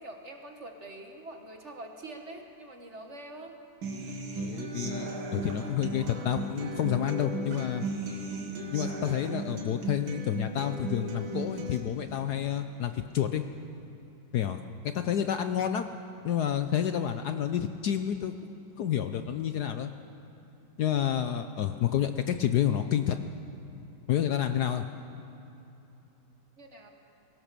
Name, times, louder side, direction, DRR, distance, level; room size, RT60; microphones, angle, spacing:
voice 1, 0.0-3.6 26.6-26.9, right 2 dB, 40° right, 3 dB, 1.7 m, -44 dB
Human voice / Acoustic guitar, 3.8-11.8, right 3 dB, 80° right, 2.5 m, -36 dB
voice 2, 4.4-7.8 8.7-13.4 14.3-15.9 16.2-18.3 18.8-19.9 20.8-23.2 24.1-24.8, left 10 dB, 65° left, 8 dB, 1.1 m, -29 dB
22.5 x 17.5 x 6.8 m, 2.9 s
omnidirectional pair, 2.1 m